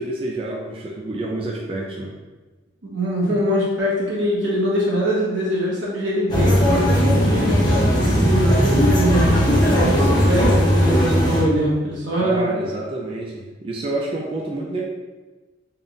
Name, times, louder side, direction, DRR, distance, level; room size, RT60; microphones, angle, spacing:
voice 1, 0.0-2.1 12.2-14.9, right 2 dB, 30° right, -2 dB, 0.4 m, -28 dB
voice 2, 2.8-12.4, equal, 85° right, -6 dB, 1.2 m, -23 dB
sound 1, 6.3-11.4, equal, 25° left, 0.8 m, -17 dB
3.6 x 2.3 x 3.9 m, 1.2 s
head